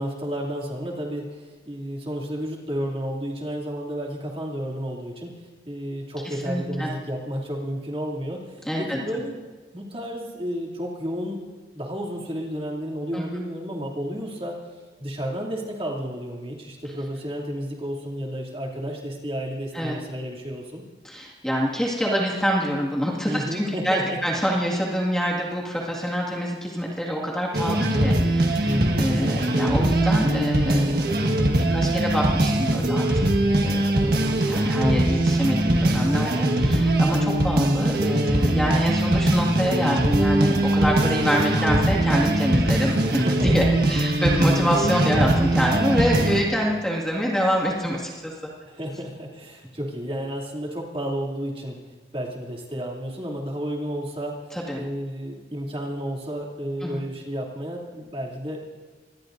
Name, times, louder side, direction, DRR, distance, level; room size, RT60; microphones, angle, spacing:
voice 1, 0.0-9.4 9.7-11.4 11.7-14.6 15.0-20.8 23.3-24.2 28.6-29.1 34.0-34.5 43.2-43.5 48.7-51.8 52.1-54.4 54.7-58.6, equal, 30° right, -3 dB, 2.7 m, -32 dB
voice 2, 6.2-6.9 8.6-9.0 13.1-13.2 19.7-20.0 21.0-33.1 33.6-34.0 34.5-48.5 54.5-54.8 56.8-57.0, equal, 5° left, -4 dB, 2.0 m, -26 dB
sound 1, 27.5-46.4, right 1 dB, 60° right, 1.6 m, -21 dB
25.5 x 21.5 x 2.7 m, 1.4 s
head